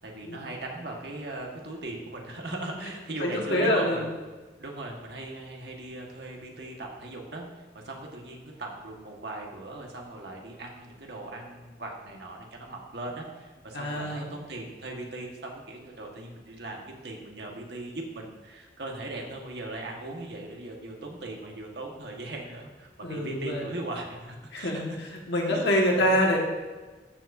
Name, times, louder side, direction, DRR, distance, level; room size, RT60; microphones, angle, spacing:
voice 1, 0.0-4.1 4.6-24.8 25.5-26.2, right 2 dB, 70° right, 0 dB, 1.5 m, -39 dB
voice 2, 3.2-4.0 13.7-14.3 23.0-23.6 24.5-26.4, left 1 dB, 75° left, -1 dB, 1.6 m, -26 dB
13.0 x 7.2 x 2.7 m, 1.3 s
head